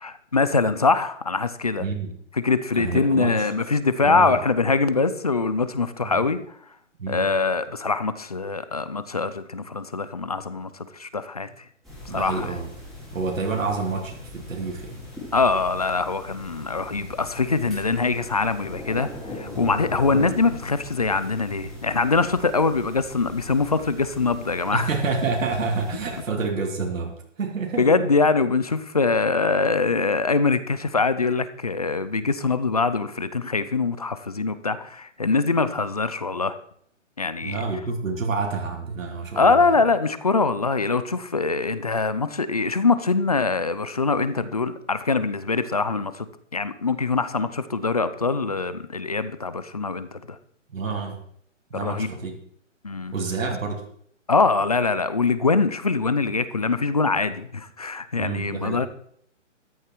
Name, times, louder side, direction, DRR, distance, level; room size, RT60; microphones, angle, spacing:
voice 1, 0.0-1.8 2.4-6.4 7.1-11.5 12.1-12.5 15.3-19.1 19.4-24.9 27.8-36.5 37.2-37.6 39.4-46.3 46.5-50.4 51.7-52.1 52.8-53.1 54.3-58.9, left 4 dB, 30° left, 14 dB, 0.5 m, -23 dB
voice 2, 1.8-2.2 2.7-3.5 4.0-4.4 6.0-6.2 7.0-7.3 12.1-12.7 13.1-15.0 24.7-28.1 37.4-39.8 50.7-51.2 51.7-52.4 53.1-53.8 58.1-58.8, right 4 dB, 80° right, 1 dB, 2.7 m, -28 dB
sound 1, 11.8-26.2, left 2 dB, ahead, 3.0 m, -39 dB
13.5 x 10.0 x 4.5 m, 0.64 s
hypercardioid pair, 170°, 39 cm